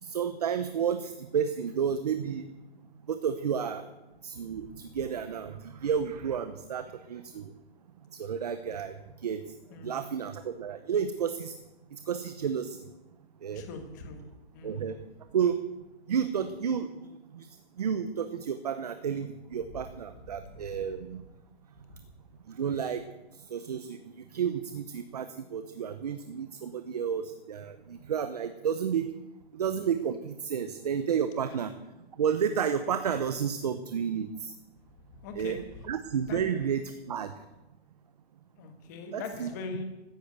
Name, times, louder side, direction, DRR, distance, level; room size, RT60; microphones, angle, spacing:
voice 1, 0.0-2.5 3.1-3.9 4.2-7.5 8.1-9.5 9.8-11.5 11.9-12.8 13.4-13.6 14.6-15.0 15.3-15.7 16.1-17.5 17.8-21.2 22.5-23.1 23.3-29.1 29.5-31.7 32.2-34.5 35.3-37.3 39.1-39.5, right 7 dB, 40° right, 10 dB, 0.8 m, -31 dB
voice 2, 9.7-10.0 13.5-14.3 14.5-14.8 35.2-35.6 36.3-36.4 38.6-39.8, left 4 dB, 15° left, 6 dB, 1.4 m, -41 dB
14.0 x 10.0 x 8.0 m, 1.0 s
hypercardioid pair, 175°, 32 cm